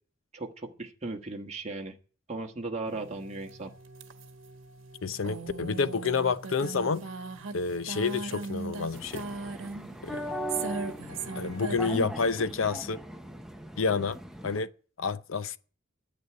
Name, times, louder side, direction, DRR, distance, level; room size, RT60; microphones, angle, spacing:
voice 1, 0.3-1.9 2.3-3.7, right 2 dB, 35° right, 1.4 m, -37 dB
sound 1, 2.9-12.1, right 4 dB, 75° right, 1.2 m, -39 dB
voice 2, 5.0-7.0 7.5-9.3 10.0-10.2 11.4-13.0 13.8-14.2 14.4-14.7 15.0-15.6, left 4 dB, 80° left, 0.6 m, -29 dB
sound 2, 8.9-14.6, equal, ahead, 0.7 m, -39 dB
9.4 x 7.9 x 9.5 m
head